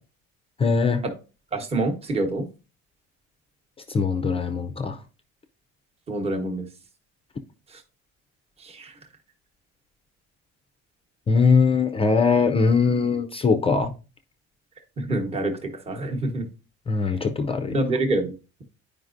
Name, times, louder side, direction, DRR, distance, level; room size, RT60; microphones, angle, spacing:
voice 1, 0.6-1.0 3.9-5.0 11.3-13.9 16.9-17.8, left 5 dB, 20° left, 0.4 m, -21 dB
voice 2, 1.5-2.5 6.1-6.7 7.7-7.8 8.6-8.9 15.0-16.5 17.7-18.3, right 2 dB, 20° right, 1.0 m, -26 dB
9.4 x 5.0 x 2.5 m
cardioid pair, 145°, 30 cm